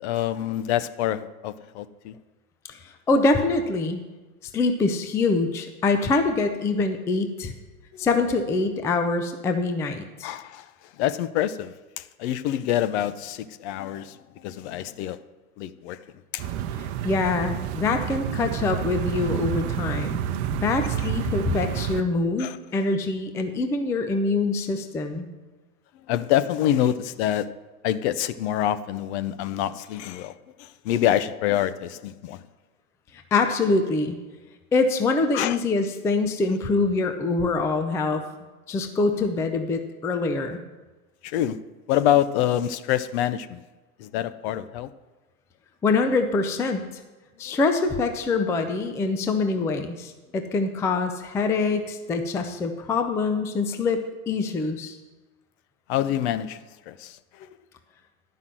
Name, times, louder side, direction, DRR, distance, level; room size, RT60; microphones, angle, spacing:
voice 1, 0.0-2.1 10.2-10.6 11.0-14.2 14.4-15.2 15.6-16.0 16.3-16.5 22.4-22.6 26.1-27.5 27.8-30.3 30.6-32.4 35.3-35.6 41.2-41.6 41.9-43.6 44.0-44.9 47.5-47.6 55.9-57.1, left 11 dB, 50° left, 14 dB, 0.7 m, -26 dB
voice 2, 2.7-4.0 4.5-7.5 8.0-10.3 16.8-20.2 20.5-25.3 33.3-34.2 34.7-38.2 38.7-40.6 45.8-46.8 47.4-55.0, left 3 dB, 5° left, 7 dB, 0.4 m, -24 dB
sound 1, 16.4-22.0, right 10 dB, 50° right, 0.8 m, -29 dB
11.0 x 5.6 x 7.5 m, 1.2 s
hypercardioid pair, 110°, 44 cm